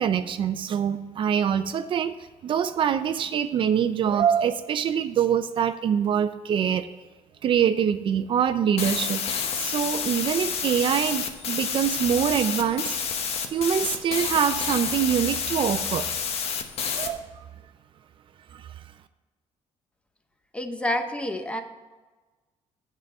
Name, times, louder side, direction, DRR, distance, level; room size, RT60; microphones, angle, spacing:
voice 1, 0.0-2.1 2.4-6.9 7.4-9.2 9.6-12.9 13.5-16.1 16.9-17.2 18.5-18.7, right 8 dB, 50° right, 11 dB, 0.4 m, -24 dB
sound 1, 8.8-17.1, left 6 dB, 65° left, 0.9 m, -29 dB
voice 2, 20.5-21.6, left 1 dB, 10° left, 7 dB, 0.7 m, -28 dB
8.1 x 4.9 x 6.7 m, 1.3 s
cardioid pair, 135°, 11 cm